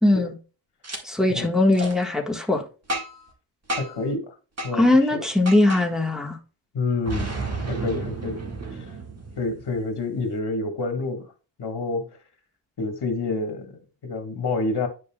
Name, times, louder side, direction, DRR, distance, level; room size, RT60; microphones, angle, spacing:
voice 1, 0.0-0.3 1.0-2.6 4.7-6.4, left 2 dB, ahead, 1.4 m, -20 dB
Boom, 0.8-1.0 1.7-1.9 2.9-3.3 3.7-4.1 4.6-4.7 5.5-5.8 7.1-9.8, right 2 dB, 30° right, 1.7 m, -31 dB
voice 2, 3.8-4.3 4.6-5.2 6.7-7.3 7.7-8.4 8.7-8.9 9.4-11.3 11.6-12.1 12.8-14.9, left 3 dB, 55° left, 1.6 m, -28 dB
9.4 x 5.2 x 2.3 m
cardioid pair, 90°, 48 cm